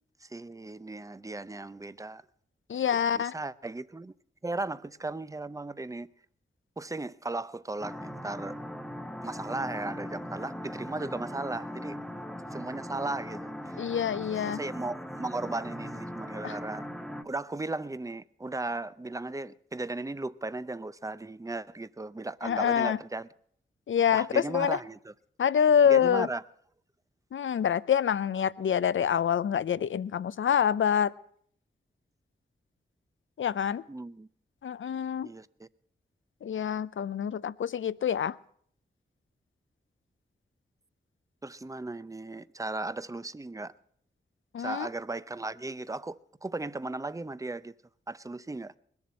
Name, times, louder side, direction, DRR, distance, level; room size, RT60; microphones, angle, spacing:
voice 1, 0.2-2.2 3.1-4.1 4.4-6.1 6.8-8.6 9.2-12.0 12.5-13.8 14.5-16.8 17.2-23.3 24.1-25.1 25.8-26.4 33.9-34.3 35.2-35.7 41.4-43.7 44.6-47.7 48.1-48.7, right 2 dB, 15° right, 0.6 m, -36 dB
voice 2, 2.7-3.3 13.8-14.6 16.4-16.6 22.4-23.0 23.9-24.8 25.4-26.3 27.3-31.1 33.4-33.8 34.6-35.3 36.4-38.4 44.5-44.9, left 8 dB, 70° left, 0.5 m, -26 dB
sound 1, 7.8-17.2, equal, ahead, 1.0 m, -39 dB
20.5 x 7.1 x 7.5 m
cardioid pair, 50°, 20 cm